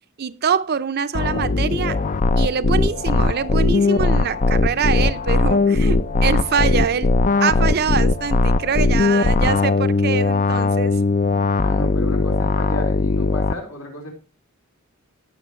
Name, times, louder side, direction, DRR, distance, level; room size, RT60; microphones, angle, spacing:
voice 1, 0.2-2.0 2.4-7.1 7.4-11.0, right 6 dB, 50° right, 0.5 m, -24 dB
sound 1, 1.1-13.5, left 3 dB, 35° left, 0.4 m, -19 dB
voice 2, 11.6-14.2, equal, 75° left, 4.2 m, -33 dB
17.5 x 6.0 x 3.1 m
head